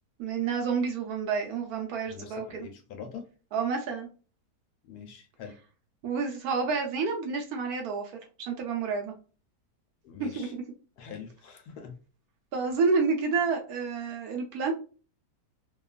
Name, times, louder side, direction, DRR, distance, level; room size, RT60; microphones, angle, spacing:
voice 1, 0.2-2.7 3.5-4.1 6.0-8.1 8.4-9.1 10.2-10.6 12.5-14.7, right 5 dB, 70° right, 2 dB, 1.0 m, -29 dB
voice 2, 2.1-3.2 4.9-5.5 10.0-10.5 11.0-12.0, left 6 dB, 75° left, 5 dB, 1.1 m, -44 dB
2.9 x 2.3 x 2.3 m, 0.36 s
omnidirectional pair, 1.8 m